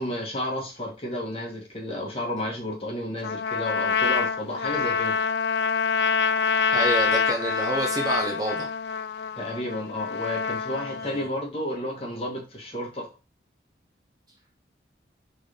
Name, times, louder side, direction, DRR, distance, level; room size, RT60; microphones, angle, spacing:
voice 1, 0.0-5.1 9.4-13.1, left 1 dB, 35° left, -1 dB, 1.6 m, -32 dB
Trumpet, 3.2-11.3, left 5 dB, 70° left, 0.3 m, -26 dB
voice 2, 6.7-8.7 11.0-11.3, right 1 dB, 20° right, 1 dB, 0.7 m, -28 dB
3.9 x 3.8 x 3.3 m, 0.30 s
head